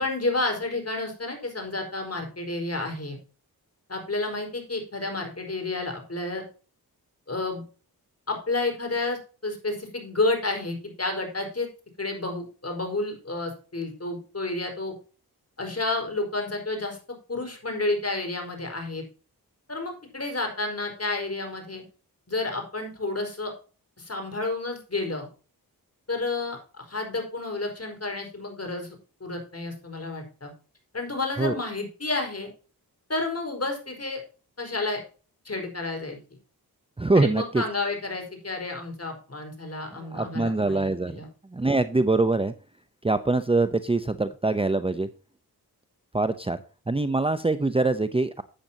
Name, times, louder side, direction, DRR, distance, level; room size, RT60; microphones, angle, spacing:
voice 1, 0.0-3.2 3.9-6.4 7.3-7.6 8.3-11.7 12.0-14.9 15.6-17.0 17.3-19.0 19.7-21.8 22.3-23.5 24.0-25.3 26.1-30.5 30.9-32.5 33.1-34.2 34.6-35.0 35.4-36.2 37.1-41.3, left 2 dB, 40° left, 3 dB, 4.7 m, -30 dB
voice 2, 37.0-37.6 40.0-41.2 41.5-42.5 43.0-45.1 46.1-46.6 46.9-48.4, right 2 dB, 15° right, 12 dB, 0.7 m, -24 dB
12.0 x 8.8 x 2.8 m, 0.36 s
cardioid pair, 60°, 38 cm